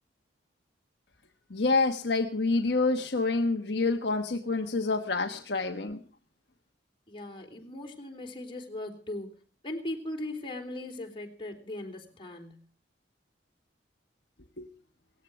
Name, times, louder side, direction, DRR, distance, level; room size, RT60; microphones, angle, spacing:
voice 1, 1.5-6.0 14.6-14.7, left 3 dB, 60° left, 4 dB, 1.2 m, -27 dB
voice 2, 7.1-12.6, left 1 dB, 25° left, 2 dB, 3.5 m, -39 dB
19.0 x 15.0 x 4.8 m, 0.43 s
head